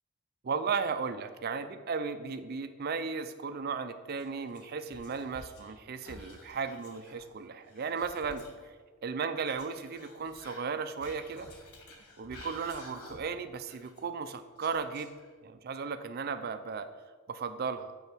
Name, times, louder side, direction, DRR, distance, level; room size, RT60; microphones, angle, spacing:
voice 1, 0.4-8.4 9.0-11.5 12.2-15.1 15.4-16.9 17.3-17.9, right 5 dB, 45° right, 10 dB, 0.4 m, -35 dB
Whispering, 4.1-5.7 6.0-8.7 9.4-13.4 13.7-15.5, left 2 dB, 85° left, 1.2 m, -52 dB
5.6 x 4.3 x 6.0 m, 1.4 s
head